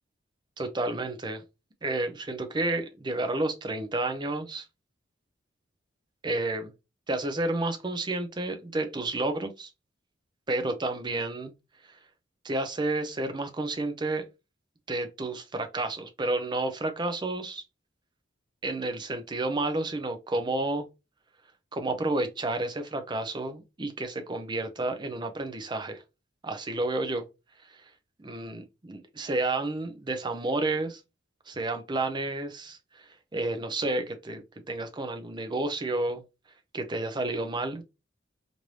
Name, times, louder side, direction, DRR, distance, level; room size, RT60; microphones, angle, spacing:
voice 1, 0.6-1.4 1.8-4.6 6.2-6.7 7.1-9.7 10.5-11.5 11.9-12.0 12.4-14.2 14.9-17.6 18.6-20.9 21.7-26.0 26.4-27.3 27.7-27.8 28.2-31.0 31.5-36.2 36.7-37.8, right 2 dB, 25° right, 0.5 m, -31 dB
3.1 x 2.6 x 3.0 m
head